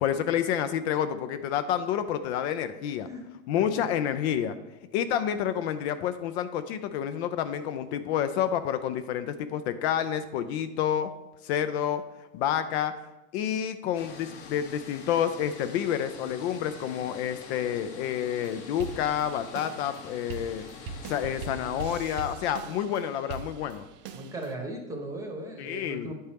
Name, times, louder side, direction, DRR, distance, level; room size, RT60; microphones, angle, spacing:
voice 1, 0.0-3.1 3.5-4.6 4.9-11.1 11.4-12.0 12.3-12.9 13.3-20.6 21.0-23.9 25.6-26.1, left 9 dB, 60° left, 10 dB, 0.5 m, -29 dB
sound 1, 13.9-21.9, left 5 dB, 40° left, 0.8 m, -45 dB
sound 2, 18.3-24.5, right 4 dB, 30° right, 0.4 m, -42 dB
voice 2, 21.3-22.0 24.1-26.1, right 1 dB, 10° right, 2 dB, 0.9 m, -38 dB
9.3 x 4.3 x 3.4 m, 0.98 s
supercardioid pair, 145°, 38 cm